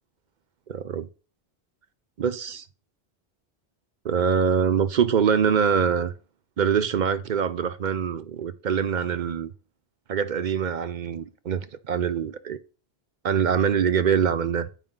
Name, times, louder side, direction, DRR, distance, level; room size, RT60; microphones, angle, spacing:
voice 1, 0.7-1.1 2.2-2.6 4.0-6.1 6.6-9.5 10.1-12.6 13.2-14.7, right 7 dB, 55° right, 0.6 m, -24 dB
9.0 x 4.8 x 3.7 m
omnidirectional pair, 1.0 m